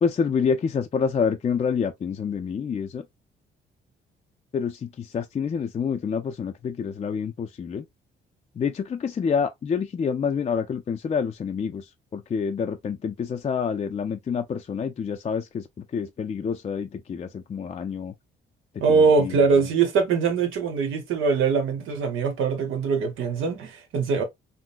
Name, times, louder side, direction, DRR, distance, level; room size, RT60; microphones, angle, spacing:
voice 1, 0.0-3.0 4.5-7.8 8.6-11.8 12.1-15.6 15.9-18.1 19.2-19.3, left 6 dB, 30° left, 0.4 m, -27 dB
voice 2, 18.8-24.2, right 5 dB, 85° right, 1.1 m, -22 dB
3.7 x 2.1 x 2.5 m
cardioid pair, 90°, 20 cm